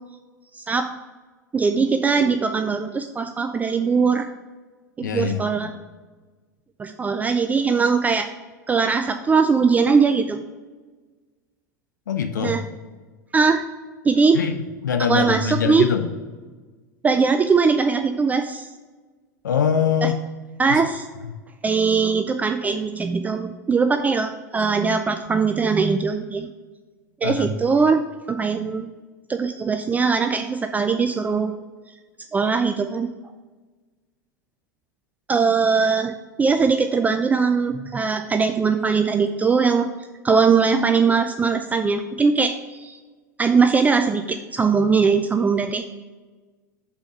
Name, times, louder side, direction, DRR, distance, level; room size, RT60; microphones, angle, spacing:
voice 1, 0.5-0.9 1.5-4.3 5.0-5.7 6.8-8.3 8.7-10.4 12.4-12.6 13.3-13.7 14.0-14.4 15.1-15.9 17.0-18.7 20.0-20.1 20.6-21.1 21.6-26.5 27.2-28.0 28.3-28.9 29.3-31.5 32.3-33.1 35.3-39.9 40.2-43.0 43.4-45.8, right 5 dB, 15° right, 7 dB, 0.3 m, -20 dB
voice 2, 5.0-5.7 12.1-12.5 14.3-16.1 19.4-20.2 20.7-20.8 21.2-21.3 27.2-27.5, left 7 dB, 80° left, 7 dB, 0.6 m, -23 dB
5.5 x 4.4 x 5.3 m, 1.3 s
hypercardioid pair, 90°, 10 cm